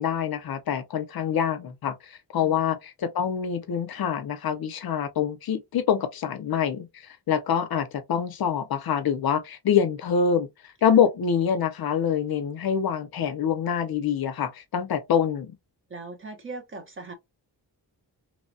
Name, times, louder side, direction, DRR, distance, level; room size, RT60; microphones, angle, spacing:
voice 1, 0.0-1.9 2.3-10.5 10.8-15.5, left 7 dB, 60° left, 0.6 m, -25 dB
voice 2, 15.9-17.1, right 3 dB, 30° right, 0.7 m, -39 dB
3.0 x 2.1 x 2.6 m
wide cardioid pair, 165°, 42 cm